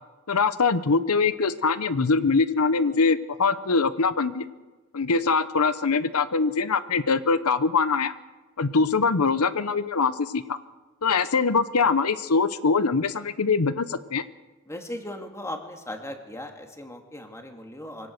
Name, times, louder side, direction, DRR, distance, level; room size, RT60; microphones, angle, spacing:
voice 1, 0.3-4.4 4.9-8.1 8.6-10.6 11.0-14.2, left 4 dB, 90° left, 13 dB, 0.8 m, -23 dB
voice 2, 14.7-18.1, left 1 dB, 15° left, 4 dB, 2.2 m, -38 dB
24.0 x 17.5 x 6.6 m, 1.2 s
head